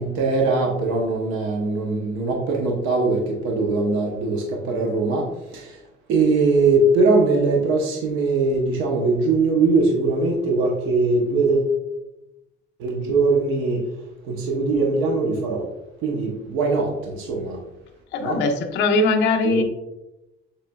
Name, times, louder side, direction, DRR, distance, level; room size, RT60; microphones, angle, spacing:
voice 1, 0.0-5.8 6.1-11.8 12.8-13.8 14.2-15.7 16.0-17.6 18.2-18.4 19.4-19.6, right 3 dB, 70° right, 0 dB, 0.8 m, -21 dB
voice 2, 18.1-19.6, left 3 dB, 55° left, 4 dB, 0.7 m, -20 dB
6.8 x 3.2 x 2.3 m, 0.93 s
cardioid pair, 175°, 21 cm